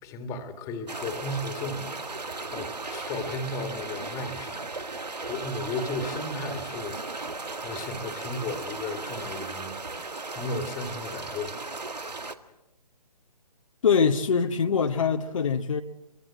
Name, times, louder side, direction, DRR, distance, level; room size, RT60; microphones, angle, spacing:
voice 1, 0.0-5.0 5.3-7.0 7.6-9.8 10.4-11.6, left 2 dB, 15° left, 2.1 m, -35 dB
sound 1, 0.9-12.3, right 3 dB, 80° right, 1.9 m, -36 dB
voice 2, 13.8-15.8, left 6 dB, 50° left, 1.2 m, -23 dB
24.5 x 23.5 x 7.5 m
figure-of-eight pair, 140°, 21 cm